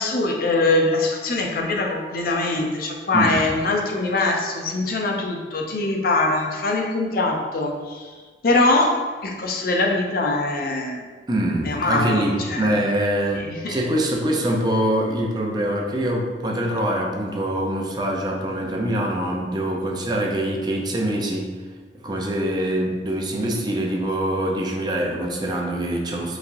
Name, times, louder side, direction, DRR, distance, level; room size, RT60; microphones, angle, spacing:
voice 1, 0.0-8.1 8.4-11.0 11.6-12.8 13.3-13.8, left 2 dB, 55° left, 1 dB, 0.6 m, -23 dB
voice 2, 3.1-3.4 11.3-21.5 22.0-26.4, right 1 dB, 25° right, 0 dB, 0.6 m, -24 dB
4.8 x 3.2 x 2.6 m, 1.5 s
head